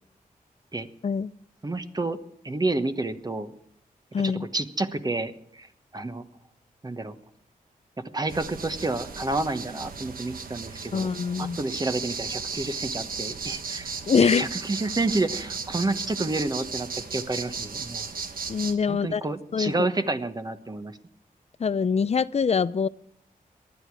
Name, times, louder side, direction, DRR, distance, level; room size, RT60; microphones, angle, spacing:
voice 1, 1.6-2.2 2.4-3.5 4.2-6.2 6.8-7.1 8.1-11.1 11.4-14.0 14.2-18.1 18.9-21.0, right 2 dB, 25° right, 9 dB, 1.2 m, -29 dB
voice 2, 4.1-4.5 10.9-11.6 14.1-14.4 18.5-19.2 19.5-19.9 21.6-22.9, left 6 dB, 45° left, 17 dB, 0.5 m, -24 dB
sound 1, 8.3-18.7, right 5 dB, 70° right, 1.2 m, -35 dB
19.0 x 12.0 x 4.8 m, 0.67 s
cardioid pair, 80°, 15 cm